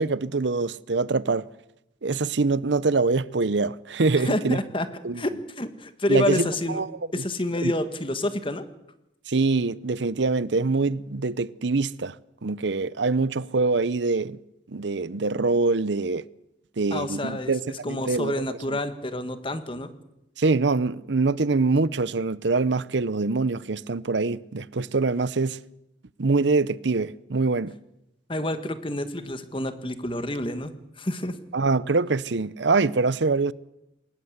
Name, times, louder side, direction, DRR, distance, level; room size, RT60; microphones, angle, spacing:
voice 1, 0.0-1.5 2.0-4.6 5.0-5.2 6.1-6.9 7.2-7.3 7.6-7.7 9.3-12.2 12.4-14.4 14.7-16.2 16.8-18.8 20.4-25.6 26.2-27.8 31.5-33.5, right 3 dB, 70° right, 0.7 m, -24 dB
voice 2, 4.2-4.9 5.1-5.3 5.6-6.8 7.1-8.6 16.9-19.9 28.3-31.4, left 1 dB, 30° left, 1.6 m, -28 dB
22.0 x 19.5 x 8.1 m
head